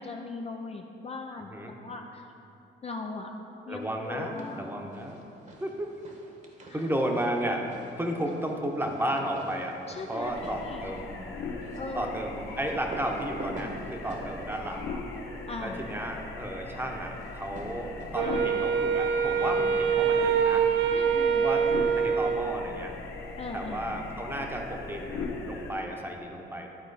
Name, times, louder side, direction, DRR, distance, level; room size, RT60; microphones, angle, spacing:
voice 1, 0.0-1.5 1.8-2.3 2.8-3.3 3.7-4.7 6.6-6.9 9.9-10.9 11.8-12.1 15.5-15.9 18.2-18.6 19.6-19.8 20.9-21.4 23.4-23.8, left 4 dB, 30° left, 2 dB, 0.5 m, -39 dB
voice 2, 3.7-5.2 5.6-5.9 6.7-7.6 8.0-9.8 10.1-11.1 11.9-14.9 15.6-20.6 21.4-22.9 23.5-26.7, right 1 dB, 10° right, 1 dB, 0.9 m, -33 dB
sound 1, 4.1-4.6 4.9-15.9 17.2-18.4, right 1 dB, 40° right, 1.2 m, -46 dB
sound 2, 10.2-25.7, left 3 dB, 90° left, 0.9 m, -39 dB
Wind instrument woodwind instrument, 18.1-22.8, right 7 dB, 75° right, 0.4 m, -25 dB
11.0 x 4.3 x 4.1 m, 2.8 s
cardioid pair, 90°, 20 cm